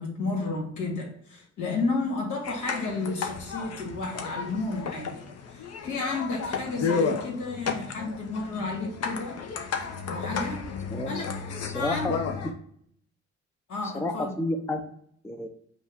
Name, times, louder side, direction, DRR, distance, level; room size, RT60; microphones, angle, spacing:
voice 1, 0.0-9.4 10.1-10.7 11.1-12.1 13.7-14.3, left 3 dB, 75° left, -1 dB, 1.8 m, -32 dB
sound 1, 2.4-12.5, left 5 dB, 55° left, 0.8 m, -33 dB
voice 2, 11.6-12.2 12.4-12.5 13.8-14.9 15.2-15.5, left 2 dB, 10° left, 5 dB, 0.5 m, -30 dB
5.2 x 2.4 x 3.5 m, 0.67 s
cardioid pair, 90°, 30 cm